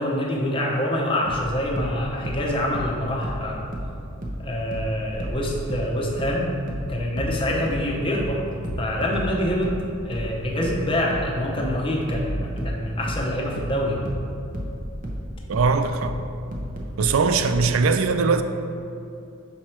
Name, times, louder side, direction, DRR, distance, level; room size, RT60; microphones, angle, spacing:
voice 1, 0.0-3.7 4.4-6.5 6.9-8.4 8.8-9.7 10.0-14.0, left 1 dB, 25° left, 0.8 m, -26 dB
sound 1, 1.3-4.5 4.7-17.7, equal, 35° right, 0.7 m, -32 dB
sound 2, 6.8-8.0 8.7-10.9 12.2-13.3 14.0-16.1, equal, 60° left, 0.6 m, -38 dB
voice 2, 15.5-16.2 17.0-18.4, right 4 dB, 70° right, 0.4 m, -21 dB
5.9 x 4.7 x 4.4 m
head